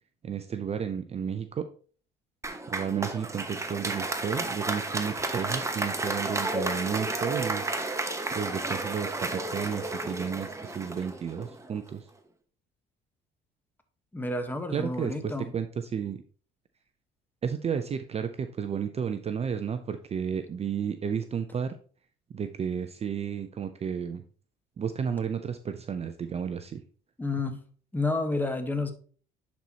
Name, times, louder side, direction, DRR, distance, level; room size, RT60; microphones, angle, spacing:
voice 1, 0.2-1.7 2.7-7.7 8.3-12.1 14.7-16.2 17.4-21.8 22.3-24.2 24.8-26.8, right 7 dB, 30° right, 9 dB, 0.5 m, -32 dB
Applause, 2.4-11.8, right 2 dB, 15° right, 1.0 m, -32 dB
voice 2, 14.1-15.5 27.2-27.6 27.9-28.9, left 2 dB, 10° left, 7 dB, 1.2 m, -30 dB
10.5 x 4.2 x 2.8 m, 0.42 s
supercardioid pair, 80°, 19 cm